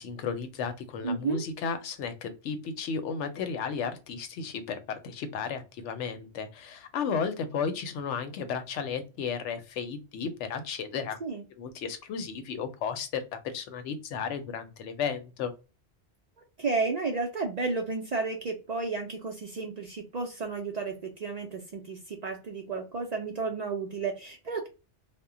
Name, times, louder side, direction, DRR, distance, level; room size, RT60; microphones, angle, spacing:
voice 1, 0.0-11.2 11.6-15.5, left 6 dB, 90° left, 9 dB, 0.9 m, -34 dB
voice 2, 1.0-1.4 11.2-11.4 16.6-24.7, right 4 dB, 55° right, 2 dB, 0.5 m, -32 dB
2.1 x 2.1 x 3.5 m, 0.30 s
omnidirectional pair, 1.2 m